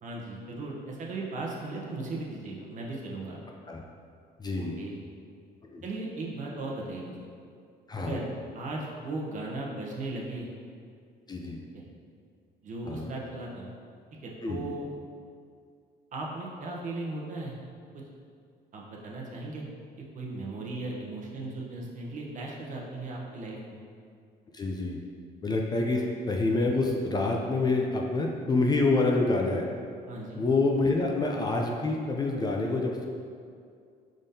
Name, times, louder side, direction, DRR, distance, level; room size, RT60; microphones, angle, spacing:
voice 1, 0.0-3.4 4.6-5.0 5.8-7.3 8.0-8.3 8.5-10.5 11.7-11.8 12.6-13.7 14.1-14.9 16.1-17.5 18.7-19.6 20.0-23.8 26.0-26.1 30.1-30.4, right 2 dB, 50° right, -2 dB, 0.8 m, -37 dB
voice 2, 4.4-4.8 5.6-5.8 7.9-8.2 11.3-11.6 12.9-13.1 14.4-14.7 24.5-25.0 25.4-29.7 30.3-33.1, left 3 dB, 25° left, 0 dB, 0.4 m, -27 dB
5.1 x 3.7 x 2.7 m, 2.3 s
cardioid pair, 110°, 17 cm